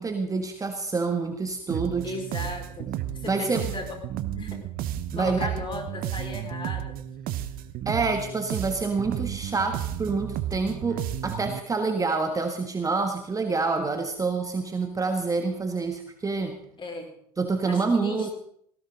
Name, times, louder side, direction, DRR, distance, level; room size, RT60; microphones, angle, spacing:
voice 1, 0.0-2.1 3.2-3.6 5.1-5.5 7.8-16.6 17.4-18.3, right 4 dB, 15° right, 6 dB, 1.5 m, -27 dB
sound 1, 1.7-11.6, right 11 dB, 45° right, 1.1 m, -33 dB
voice 2, 2.0-2.9 3.2-3.9 4.4-4.6 5.1-6.8 16.8-17.1 17.7-18.3, left 2 dB, 25° left, 3 dB, 4.7 m, -35 dB
19.0 x 16.5 x 3.9 m, 0.64 s
hypercardioid pair, 85°, 21 cm